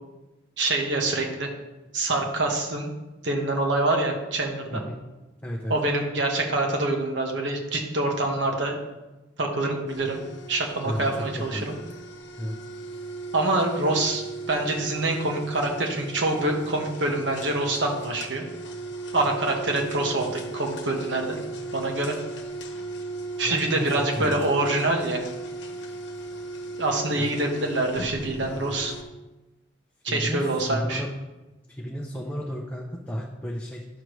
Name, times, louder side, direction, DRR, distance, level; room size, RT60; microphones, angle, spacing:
voice 1, 0.6-1.5 1.9-2.9 3.2-4.7 5.7-8.8 9.4-10.2 10.5-11.8 13.3-18.4 19.1-21.4 21.7-22.1 23.4-25.2 26.8-28.9 30.0-31.0, right 2 dB, 70° right, 2 dB, 1.3 m, -25 dB
voice 2, 5.4-5.7 10.8-11.7 12.4-12.6 23.4-24.4 27.2-27.3 30.1-31.1 31.7-33.9, equal, 10° left, -3 dB, 0.6 m, -32 dB
sound 1, 9.9-29.0, right 2 dB, 65° left, 1.0 m, -37 dB
10.5 x 6.5 x 3.2 m, 1.1 s
head